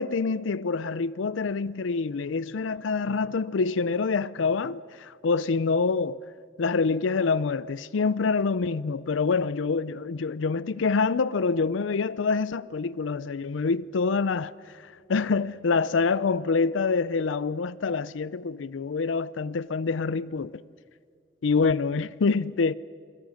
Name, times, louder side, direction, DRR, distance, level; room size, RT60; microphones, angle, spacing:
voice 1, 0.0-6.2 6.6-14.5 15.1-20.5 21.4-22.7, left 4 dB, 85° left, 0.5 m, -26 dB
28.0 x 21.5 x 6.4 m
head